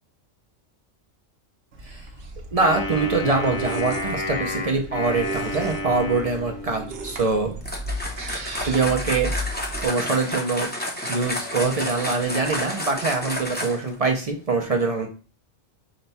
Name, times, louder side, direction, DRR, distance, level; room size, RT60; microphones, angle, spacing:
sound 1, 1.7-9.9, right 1 dB, 60° right, 1.0 m, -35 dB
voice 1, 2.5-7.5 8.6-9.3 9.8-10.7 11.0-15.1, right 4 dB, 45° right, 3 dB, 0.5 m, -24 dB
Wind instrument woodwind instrument, 2.6-7.0, left 1 dB, 55° left, 1.2 m, -30 dB
sound 2, 7.6-14.0, left 1 dB, 10° left, 0.6 m, -31 dB
5.1 x 2.3 x 4.0 m, 0.35 s
omnidirectional pair, 1.4 m